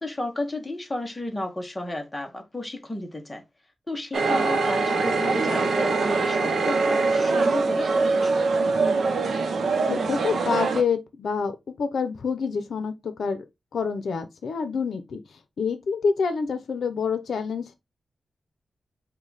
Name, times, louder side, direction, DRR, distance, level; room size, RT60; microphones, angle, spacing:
voice 1, 0.0-3.4 3.9-8.7, left 1 dB, 10° left, 0.9 m, -33 dB
sound 1, 4.1-10.8, right 3 dB, 65° right, 0.7 m, -23 dB
voice 2, 9.9-13.4 13.7-15.2 15.6-17.7, left 5 dB, 75° left, 0.6 m, -27 dB
5.0 x 2.2 x 4.0 m
wide cardioid pair, 175°, 0 cm